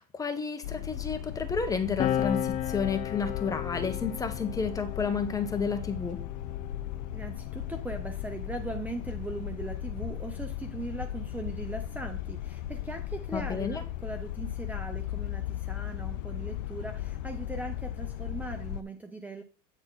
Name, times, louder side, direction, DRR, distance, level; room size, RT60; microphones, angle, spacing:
voice 1, 0.0-6.2 13.3-13.8, left 5 dB, 15° left, 7 dB, 1.1 m, -31 dB
sound 1, 0.6-18.8, left 12 dB, 90° left, 0.4 m, -37 dB
sound 2, 2.0-8.9 9.9-11.7, left 11 dB, 40° left, 0.7 m, -36 dB
voice 2, 7.1-19.4, right 2 dB, 5° right, 6 dB, 0.8 m, -39 dB
8.8 x 4.3 x 4.1 m, 0.35 s
supercardioid pair, 120°, 21 cm